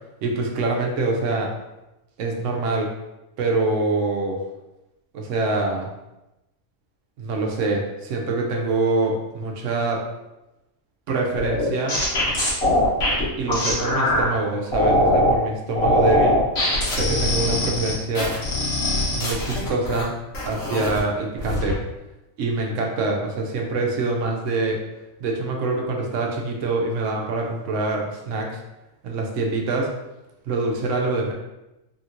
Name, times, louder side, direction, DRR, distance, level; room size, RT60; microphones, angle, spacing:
voice 1, 0.2-1.5 2.2-2.9 3.4-4.4 5.1-5.9 7.2-10.0 11.1-12.0 13.4-16.4 16.9-18.4 19.1-20.2 20.4-21.8 22.4-24.8 25.2-28.6 29.0-29.9 30.5-31.3, right 3 dB, 70° right, 1 dB, 0.9 m, -25 dB
sound 1, 11.4-14.3 14.7-15.4 15.8-20.0 20.3-21.0 21.4-21.7, left 1 dB, 55° left, 1.1 m, -22 dB
2.8 x 2.8 x 2.5 m, 0.96 s
omnidirectional pair, 1.4 m